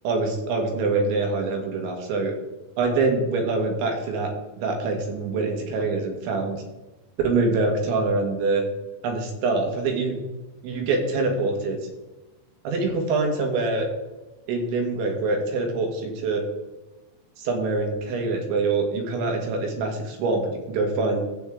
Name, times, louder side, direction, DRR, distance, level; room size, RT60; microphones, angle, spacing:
voice 1, 0.1-2.3 2.8-4.3 4.6-6.6 7.2-8.7 9.0-10.2 10.6-11.8 12.7-13.9 14.5-16.4 17.4-21.2, right 3 dB, 70° right, 3 dB, 3.8 m, -25 dB
11.5 x 8.5 x 3.6 m, 1.1 s
omnidirectional pair, 5.7 m